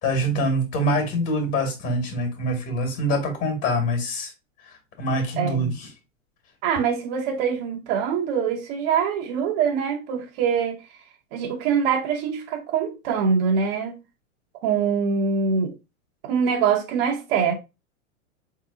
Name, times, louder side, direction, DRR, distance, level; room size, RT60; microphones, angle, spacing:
voice 1, 0.0-4.3 4.6-5.9, equal, 35° left, 2.3 m, -25 dB
voice 2, 5.4-5.7 6.6-10.8 11.3-14.0 14.6-15.7 16.2-17.5, right 6 dB, 45° right, 1.0 m, -24 dB
4.6 x 3.8 x 2.7 m
hypercardioid pair, 115°, 39 cm